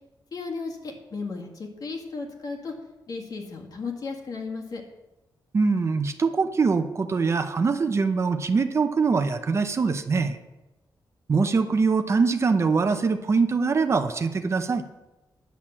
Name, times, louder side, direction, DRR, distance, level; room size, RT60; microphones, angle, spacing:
voice 1, 0.3-2.8 3.1-4.8, left 4 dB, 55° left, 2 dB, 1.9 m, -34 dB
voice 2, 5.5-10.4 11.3-14.8, right 4 dB, 35° right, 8 dB, 0.7 m, -23 dB
10.5 x 6.6 x 7.3 m, 1.0 s
wide cardioid pair, 150°, 8 cm